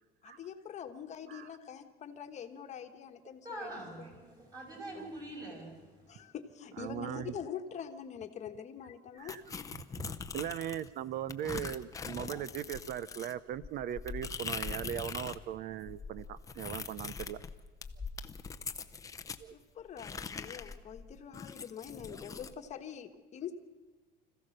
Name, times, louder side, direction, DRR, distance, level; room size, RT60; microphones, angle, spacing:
voice 1, 0.2-4.1 4.9-5.1 6.1-9.4 19.5-23.5, left 8 dB, 35° left, 6 dB, 1.4 m, -44 dB
voice 2, 3.4-6.2, right 1 dB, 20° right, -1 dB, 6.0 m, -44 dB
voice 3, 6.8-7.3 9.2-9.4 9.9-17.4 19.4-19.6 22.1-22.2, right 10 dB, 50° right, 18 dB, 0.6 m, -39 dB
sound 1, 9.3-10.9 11.3-15.4 15.7-19.4 20.0-22.5, left 5 dB, 15° left, 0.7 m, -42 dB
26.0 x 15.5 x 6.6 m, 1.3 s
cardioid pair, 155°, 20 cm